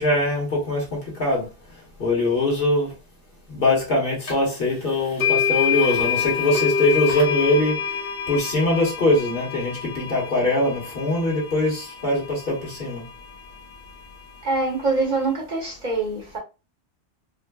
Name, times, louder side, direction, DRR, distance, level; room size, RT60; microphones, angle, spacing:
voice 1, 0.0-1.5 2.0-2.9 3.5-7.8 8.3-13.0, left 2 dB, 50° left, 1.4 m, -22 dB
sound 1, 4.3-4.4 5.2-13.2, left 7 dB, 70° left, 1.2 m, -27 dB
voice 2, 14.4-16.4, right 3 dB, 40° right, 1.0 m, -24 dB
3.8 x 2.1 x 2.2 m
omnidirectional pair, 1.2 m